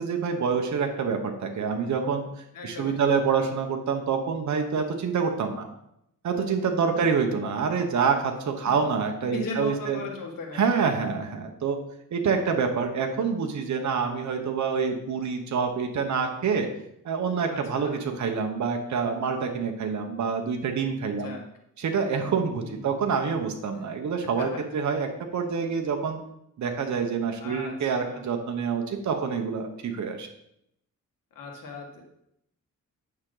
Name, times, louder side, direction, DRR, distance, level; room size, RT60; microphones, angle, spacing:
voice 1, 0.0-2.3 2.6-5.7 6.2-10.0 10.5-11.8 12.1-16.7 17.0-21.3 21.8-26.2 26.6-30.3, right 5 dB, 60° right, 4 dB, 1.1 m, -27 dB
voice 2, 2.5-3.1 6.9-7.0 9.3-10.9 17.5-18.0 21.2-21.4 22.6-22.9 24.2-24.6 27.4-28.2 31.4-32.0, left 3 dB, 80° left, 1 dB, 2.0 m, -38 dB
9.5 x 6.1 x 3.9 m, 0.77 s
wide cardioid pair, 130°, 32 cm